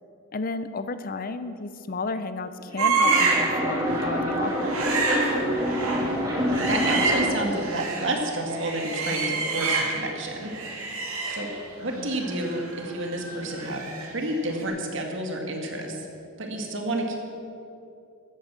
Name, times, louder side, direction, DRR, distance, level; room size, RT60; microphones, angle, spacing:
voice 1, 0.3-4.9 11.9-12.1, left 3 dB, 45° left, 12 dB, 0.6 m, -33 dB
sound 1, 2.6-7.5, equal, 20° right, 2.2 m, -27 dB
sound 2, 2.8-3.6 3.9-4.1 4.5-8.1 8.5-10.1 10.4-14.2 14.5-14.6, right 4 dB, 90° right, 2.5 m, -28 dB
voice 2, 6.7-10.9 11.3-11.5 11.8-16.1 16.4-17.2, right 1 dB, 60° right, 2 dB, 2.1 m, -30 dB
14.0 x 9.0 x 7.4 m, 2.7 s
head